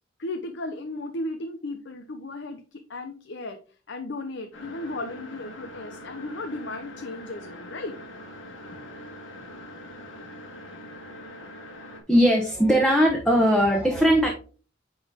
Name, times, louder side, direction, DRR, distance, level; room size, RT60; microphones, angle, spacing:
voice 1, 0.2-3.6 3.9-8.0 8.7-8.8, left 2 dB, 70° left, 6 dB, 0.7 m, -35 dB
sound 1, 4.5-12.0, left 1 dB, 85° left, 1.8 m, -43 dB
voice 2, 12.1-14.3, equal, 5° left, 0 dB, 1.1 m, -19 dB
9.5 x 4.0 x 3.5 m, 0.37 s
head